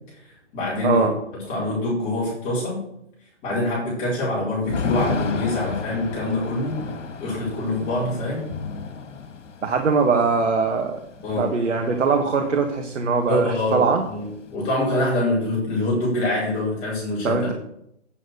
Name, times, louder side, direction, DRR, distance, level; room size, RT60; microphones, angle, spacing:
voice 1, 0.1-1.1 1.4-2.9 3.4-6.8 7.2-8.5 11.2-11.5 13.3-17.5, left 1 dB, 20° left, -7 dB, 4.7 m, -25 dB
Thunder / Rain, 4.7-12.5 12.8-12.9 13.2-14.5, left 5 dB, 80° left, 2.1 m, -33 dB
voice 2, 9.6-11.0 11.3-14.0 17.2-17.5, right 4 dB, 85° right, 3 dB, 1.7 m, -21 dB
9.2 x 7.5 x 6.6 m, 0.74 s
hypercardioid pair, 155°, 36 cm